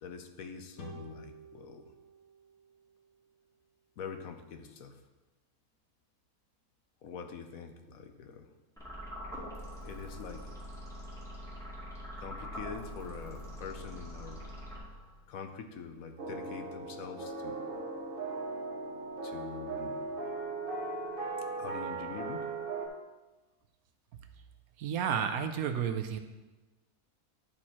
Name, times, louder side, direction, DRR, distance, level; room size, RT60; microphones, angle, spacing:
voice 1, 0.0-1.9 4.0-5.0 7.0-8.5 9.8-10.5 12.2-14.5 15.3-17.6 19.2-20.0 21.6-22.5, left 6 dB, 70° left, 6 dB, 1.1 m, -44 dB
sound 1, 0.8-4.1, right 1 dB, 50° left, 1.8 m, -52 dB
sound 2, 8.8-15.3, equal, ahead, 2.2 m, -44 dB
sound 3, 16.2-22.9, right 3 dB, 40° right, 1.2 m, -38 dB
voice 2, 24.8-26.2, right 8 dB, 75° right, 8 dB, 1.1 m, -31 dB
11.0 x 4.5 x 4.2 m, 1.2 s
omnidirectional pair, 1.6 m